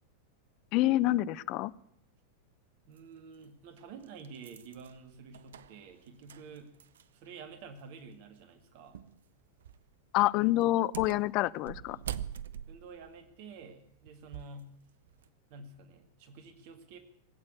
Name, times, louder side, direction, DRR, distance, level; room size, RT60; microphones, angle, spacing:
voice 1, 0.7-1.7 10.1-12.0, left 16 dB, 40° left, 18 dB, 0.5 m, -27 dB
voice 2, 2.9-6.7 7.1-9.0 12.7-14.7 15.5-17.0, right 4 dB, 45° right, 9 dB, 1.9 m, -49 dB
sound 1, 3.0-3.1 3.8-7.3 7.6-7.7 8.9-9.2 9.6-9.9 10.6-14.6 15.1-15.3, right 10 dB, 60° right, 0.6 m, -44 dB
18.5 x 8.6 x 8.4 m, 0.73 s
figure-of-eight pair, 90°, 0 cm